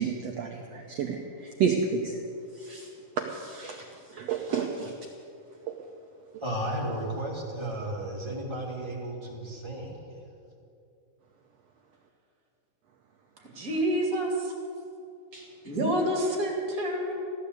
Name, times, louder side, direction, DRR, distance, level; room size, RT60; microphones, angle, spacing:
voice 1, 0.0-2.2 2.6-2.9 3.2-3.8 4.1-4.9 5.7-5.8 15.3-15.5, right 6 dB, 75° right, 2 dB, 1.5 m, -30 dB
voice 2, 6.4-10.2, right 1 dB, 10° right, -4 dB, 2.3 m, -34 dB
voice 3, 13.5-14.5 15.6-17.1, right 1 dB, 25° right, -1 dB, 2.9 m, -27 dB
15.5 x 11.5 x 8.2 m, 2.6 s
omnidirectional pair, 4.0 m